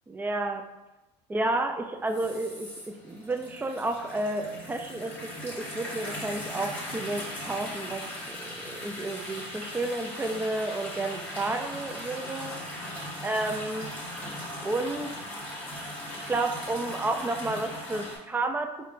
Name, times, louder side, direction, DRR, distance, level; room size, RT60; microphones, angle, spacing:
voice 1, 0.1-0.6 1.3-12.5 13.2-13.9 14.6-15.2 16.3-18.9, right 2 dB, 10° right, 6 dB, 0.3 m, -31 dB
sound 1, 2.1-18.2, left 1 dB, 10° left, 1.5 m, -39 dB
4.3 x 2.3 x 2.5 m, 1.0 s
supercardioid pair, 90°, 15 cm